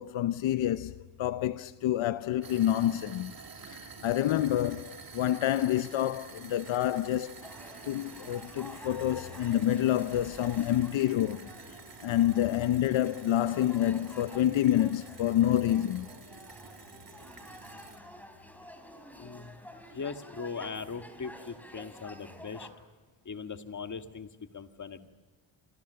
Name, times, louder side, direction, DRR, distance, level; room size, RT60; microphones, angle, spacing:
voice 1, 0.0-3.3 3.7-7.4 7.8-11.5 12.0-16.1, left 12 dB, 75° left, 0.8 m, -28 dB
sound 1, 2.4-18.0, right 5 dB, 45° right, 3.3 m, -49 dB
sound 2, 7.4-22.7, equal, 5° left, 4.3 m, -50 dB
voice 2, 19.2-19.5 19.9-22.7 23.3-24.3 24.5-25.1, left 5 dB, 40° left, 1.9 m, -39 dB
29.5 x 25.5 x 6.9 m
cardioid pair, 95°, 47 cm